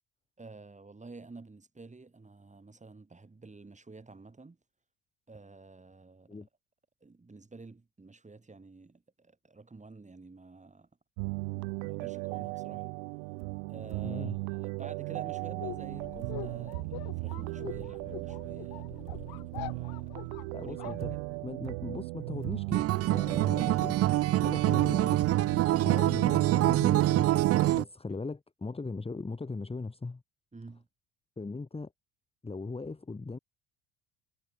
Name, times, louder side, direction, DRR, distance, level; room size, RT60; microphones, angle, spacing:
voice 1, 0.4-4.6 5.3-6.5 7.0-10.9 11.8-12.9 13.7-20.3 20.6-21.2 28.1-28.2 30.5-30.9, right 3 dB, 20° right, 7.0 m, -50 dB
sound 1, 11.2-26.0, right 34 dB, 70° right, 0.9 m, -37 dB
voice 2, 14.0-14.4 20.5-21.1 21.4-25.2 25.8-27.3 27.7-30.2 31.4-31.9 32.4-33.4, left 3 dB, 15° left, 1.8 m, -39 dB
sound 2, 15.4-21.7, left 21 dB, 65° left, 4.4 m, -45 dB
Acoustic guitar, 22.7-27.8, right 15 dB, 40° right, 0.5 m, -25 dB
hypercardioid pair, 70°, 40 cm